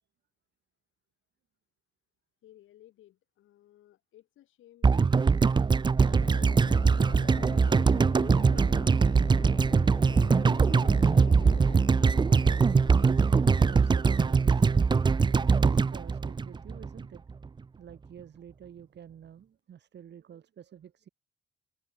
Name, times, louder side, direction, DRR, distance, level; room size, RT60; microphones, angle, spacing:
voice 1, 2.4-7.8, left 13 dB, 80° left, 7.2 m, -59 dB
sound 1, 4.8-17.0 17.3-17.4, right 5 dB, 25° right, 0.5 m, -22 dB
sound 2, 6.0-15.5, left 5 dB, 35° left, 4.8 m, -44 dB
voice 2, 13.2-14.9 15.5-17.2 17.8-21.1, right 9 dB, 60° right, 6.8 m, -49 dB
open air
cardioid pair, 90°, 20 cm